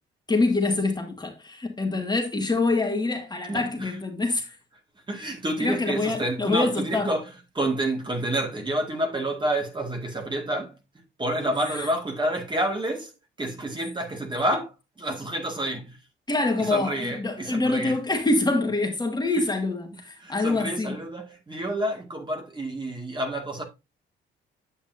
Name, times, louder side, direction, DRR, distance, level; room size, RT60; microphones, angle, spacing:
voice 1, 0.3-4.5 5.6-7.1 11.7-11.9 16.3-21.0, left 2 dB, 20° left, 2.0 m, -25 dB
voice 2, 3.5-3.9 5.1-7.2 7.5-10.7 11.2-13.1 13.4-14.7 15.0-16.0 16.6-18.0 20.2-23.6, right 1 dB, 25° right, 2.1 m, -29 dB
8.8 x 7.0 x 2.7 m
cardioid pair, 90°, 20 cm